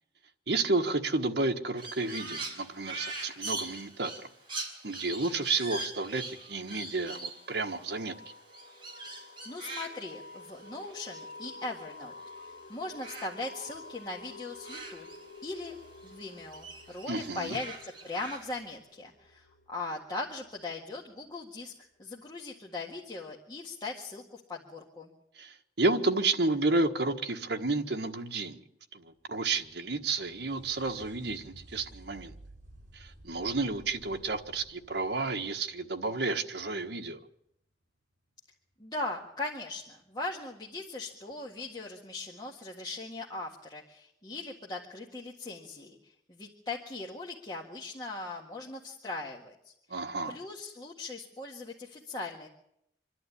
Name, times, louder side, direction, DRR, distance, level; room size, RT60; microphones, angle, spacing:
voice 1, 0.5-4.3 4.8-8.1 17.1-17.6 25.4-28.6 28.9-32.3 32.9-37.2 49.9-50.4, right 3 dB, 65° right, 1.4 m, -31 dB
Crow, 1.8-12.5 12.7-15.7 16.0-18.7, right 2 dB, 30° right, 4.5 m, -43 dB
sound 1, 6.9-21.3, left 2 dB, 50° left, 3.7 m, -50 dB
voice 2, 9.0-12.2 12.5-15.1 15.4-15.8 16.0-21.7 22.0-25.1 38.8-46.0 46.3-50.0 50.3-52.5, left 2 dB, 25° left, 1.8 m, -39 dB
sound 2, 29.2-36.8 40.2-40.3 41.3-41.4, right 1 dB, 45° right, 5.9 m, -54 dB
26.0 x 11.5 x 9.8 m
head